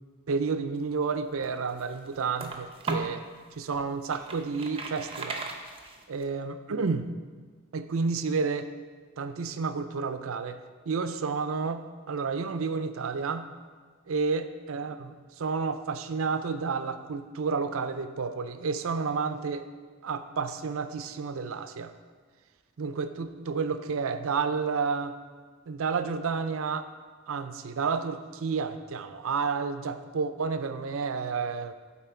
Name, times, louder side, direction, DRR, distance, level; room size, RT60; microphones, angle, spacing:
voice 1, 0.3-3.2 3.6-5.5 6.1-7.1 7.7-8.7 9.2-10.6 10.9-13.5 14.1-19.7 20.0-21.9 22.8-25.2 25.7-26.9 27.3-31.7, right 5 dB, 70° right, 9 dB, 0.5 m, -30 dB
sound 1, 1.1-3.2 3.7-6.2, right 3 dB, 25° right, 0.6 m, -37 dB
11.5 x 4.4 x 4.4 m, 1.5 s
head